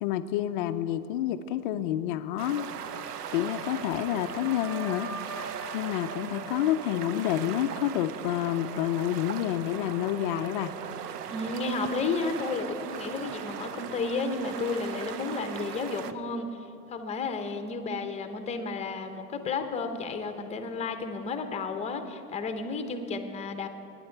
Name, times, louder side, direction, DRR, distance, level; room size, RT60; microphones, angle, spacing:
voice 1, 0.0-2.7 3.3-5.1 5.7-10.7, left 12 dB, 35° left, 11 dB, 0.4 m, -29 dB
sound 1, 2.4-16.1, right 8 dB, 75° right, 0.8 m, -39 dB
Wind instrument woodwind instrument, 3.3-7.4, right 3 dB, 45° right, 1.8 m, -43 dB
voice 2, 11.3-23.7, left 4 dB, 15° left, 7 dB, 0.8 m, -32 dB
20.5 x 9.8 x 4.5 m, 2.7 s
hypercardioid pair, 125°, 48 cm